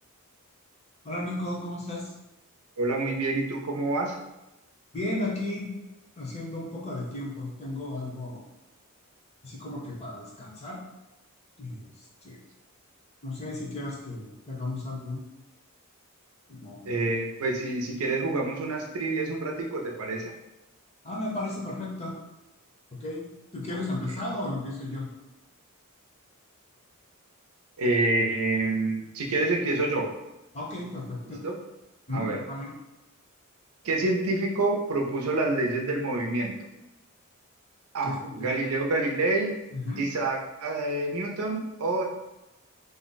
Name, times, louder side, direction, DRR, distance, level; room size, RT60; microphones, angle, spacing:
voice 1, 1.0-2.1 4.9-5.7 6.2-8.4 9.4-10.8 11.6-11.9 12.2-12.4 13.2-15.2 16.5-17.1 21.0-22.1 22.9-23.2 23.5-25.1 30.5-31.4 32.1-32.7 38.0-38.5 39.7-40.0, left 2 dB, 30° left, -4 dB, 0.7 m, -34 dB
voice 2, 2.8-4.1 16.9-20.4 23.7-23.8 27.8-30.1 31.4-31.5 32.1-32.4 33.8-36.5 37.9-39.5 40.0-42.0, right 2 dB, 85° right, 1 dB, 0.6 m, -27 dB
2.6 x 2.1 x 3.9 m, 0.98 s
head